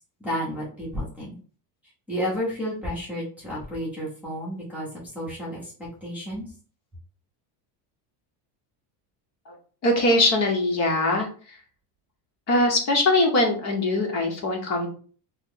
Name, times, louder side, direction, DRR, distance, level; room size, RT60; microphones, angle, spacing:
voice 1, 0.2-1.4 2.1-4.9 5.1-6.5, equal, 5° right, -7 dB, 0.8 m, -31 dB
voice 2, 9.8-11.3 12.5-14.9, left 2 dB, 35° left, 1 dB, 0.9 m, -22 dB
3.0 x 2.1 x 3.6 m, 0.42 s
cardioid pair, 165°, 48 cm